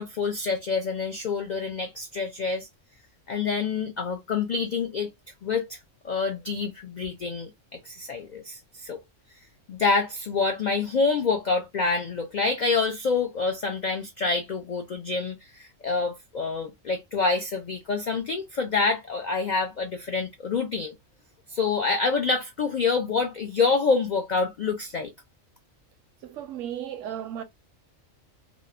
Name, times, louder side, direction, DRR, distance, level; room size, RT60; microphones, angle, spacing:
voice 1, 0.0-2.7 3.3-5.1 5.4-5.8 6.0-9.0 9.7-20.9 21.5-25.1, left 4 dB, 80° left, 0.4 m, -27 dB
voice 2, 26.2-27.4, right 10 dB, 80° right, 0.9 m, -35 dB
2.9 x 2.0 x 2.3 m
omnidirectional pair, 1.3 m